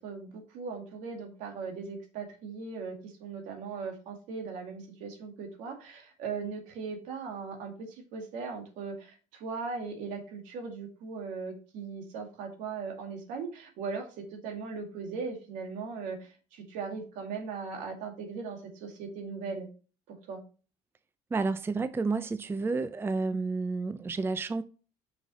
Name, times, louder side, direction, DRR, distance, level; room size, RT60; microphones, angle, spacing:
voice 1, 0.0-19.7 20.1-20.4, right 5 dB, 75° right, 2.3 m, -39 dB
voice 2, 21.3-24.6, right 3 dB, 15° right, 0.5 m, -30 dB
5.9 x 5.8 x 4.1 m
supercardioid pair, 100°, 13 cm